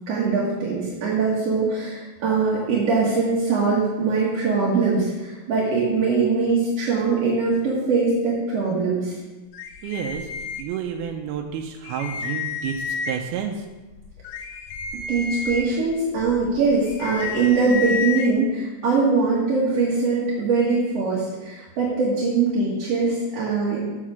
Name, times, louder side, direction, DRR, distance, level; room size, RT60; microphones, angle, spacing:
voice 1, 0.1-9.2 15.1-23.8, right 4 dB, 55° right, -6 dB, 1.9 m, -22 dB
sound 1, 9.5-11.1 11.5-11.6 11.8-13.4 13.9-18.3, left 5 dB, 80° left, 2.3 m, -31 dB
voice 2, 9.8-10.3 10.6-13.6, right 8 dB, 85° right, 2 dB, 2.5 m, -30 dB
7.6 x 6.5 x 6.2 m, 1.2 s
omnidirectional pair, 4.5 m